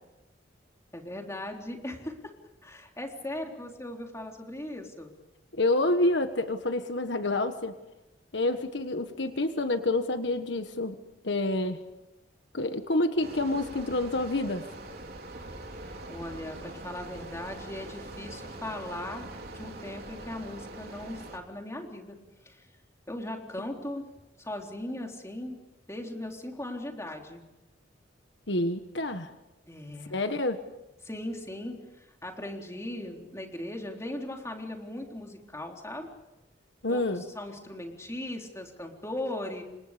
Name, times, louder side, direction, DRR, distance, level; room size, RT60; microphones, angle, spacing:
voice 1, 0.9-2.3 2.6-5.1 16.1-19.3 19.5-22.2 22.4-22.7 23.1-24.1 24.4-25.6 25.9-27.4 29.7-30.2 31.0-36.1 36.9-37.0 37.4-39.6, left 1 dB, 15° left, 1 dB, 3.8 m, -38 dB
voice 2, 5.5-7.7 8.3-10.9 11.2-11.8 12.5-14.6 28.5-29.3 30.1-30.6 36.8-37.2, left 2 dB, 70° left, 8 dB, 1.5 m, -28 dB
sound 1, 13.2-21.4, right 2 dB, 55° right, 4.0 m, -43 dB
30.0 x 26.0 x 5.2 m, 0.99 s
head